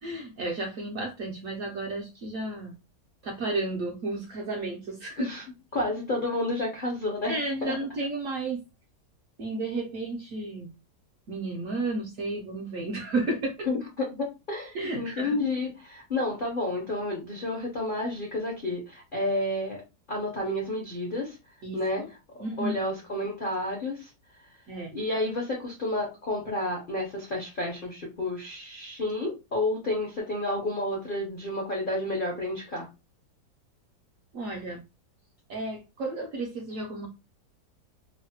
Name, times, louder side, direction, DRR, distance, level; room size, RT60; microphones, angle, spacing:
voice 1, 0.0-2.7 3.2-5.3 7.3-8.6 9.4-10.7 11.3-13.7 14.7-15.3 21.6-22.1 22.4-22.8 24.7-25.0 34.3-34.8 35.5-37.1, right 2 dB, 70° right, 0 dB, 0.8 m, -32 dB
voice 2, 5.7-7.7 13.6-19.8 20.1-21.4 21.7-22.2 22.6-24.1 24.9-32.9, left 2 dB, 60° left, -2 dB, 0.5 m, -30 dB
3.0 x 2.1 x 2.7 m, 0.27 s
omnidirectional pair, 1.9 m